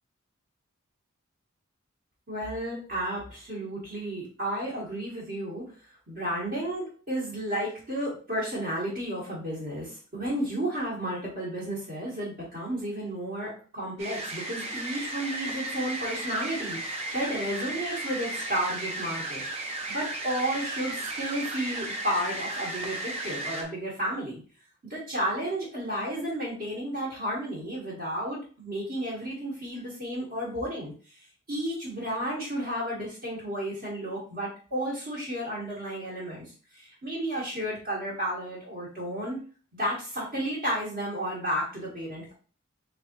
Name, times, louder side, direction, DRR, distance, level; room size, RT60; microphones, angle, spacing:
voice 1, 2.3-5.6 6.1-19.4 19.7-24.4 24.8-30.9 31.5-36.5 36.7-39.4 39.7-42.3, equal, 50° right, -7 dB, 1.3 m, -32 dB
sound 1, 14.0-23.6, right 2 dB, 30° right, 0.7 m, -34 dB
3.4 x 3.4 x 3.0 m, 0.39 s
head